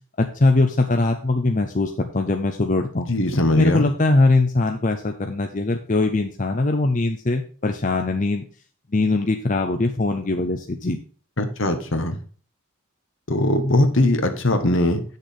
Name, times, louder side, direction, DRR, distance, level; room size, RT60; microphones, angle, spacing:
voice 1, 0.2-3.1 3.5-8.4 8.9-11.0, left 2 dB, 35° left, 5 dB, 0.6 m, -21 dB
voice 2, 3.1-3.9 11.4-12.2 13.3-15.0, left 1 dB, 65° left, 7 dB, 1.4 m, -20 dB
8.2 x 6.5 x 5.2 m, 0.41 s
head